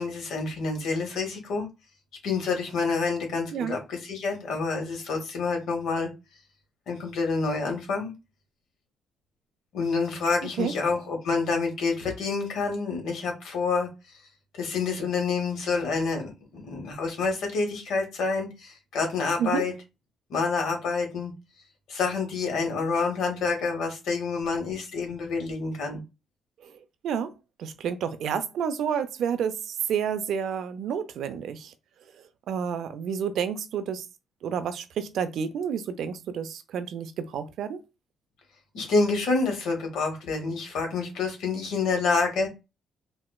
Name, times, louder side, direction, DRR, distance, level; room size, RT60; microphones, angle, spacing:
voice 1, 0.0-1.7 2.2-6.1 6.9-8.1 9.7-13.9 14.5-19.7 20.3-21.3 21.9-26.0 38.7-42.5, left 4 dB, 80° left, 1.0 m, -28 dB
voice 2, 27.0-27.3 27.6-31.7 32.5-34.1 34.4-37.8, right 7 dB, 75° right, 0.4 m, -30 dB
4.1 x 2.1 x 2.2 m
cardioid pair, 90°, 0 cm